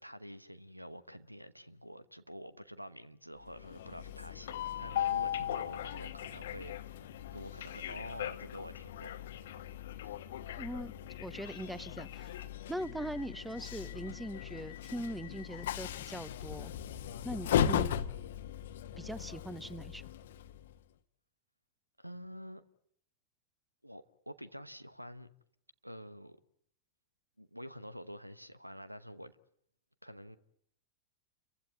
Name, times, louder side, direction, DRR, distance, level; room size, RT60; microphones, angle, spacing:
voice 1, 0.0-7.0 7.3-9.2 10.0-10.2 22.0-22.6 23.8-25.3 25.8-26.4 27.4-29.4 30.0-30.4, equal, 90° right, 1.0 m, -48 dB
Train, 3.5-20.7, left 10 dB, 60° left, 1.1 m, -38 dB
voice 2, 10.6-12.3 12.7-16.7 17.2-17.9 19.0-20.0, right 1 dB, 5° right, 1.0 m, -41 dB
29.5 x 15.5 x 9.7 m
figure-of-eight pair, 90°, 0 cm